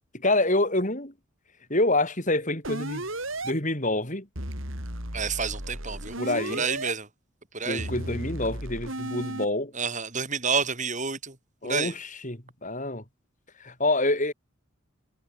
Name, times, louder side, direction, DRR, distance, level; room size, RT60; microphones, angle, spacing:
voice 1, 0.2-1.1 1.7-3.0 3.4-4.3 6.2-6.6 7.6-9.7 11.6-13.0 13.6-14.3, left 2 dB, 35° left, 7.8 m, -26 dB
sound 1, 2.6-3.5 4.4-6.9 7.8-9.5, right 1 dB, 70° right, 6.1 m, -34 dB
voice 2, 5.1-6.2 6.5-7.1 7.5-7.9 9.7-11.4 11.6-11.9, right 5 dB, 35° right, 6.1 m, -29 dB
head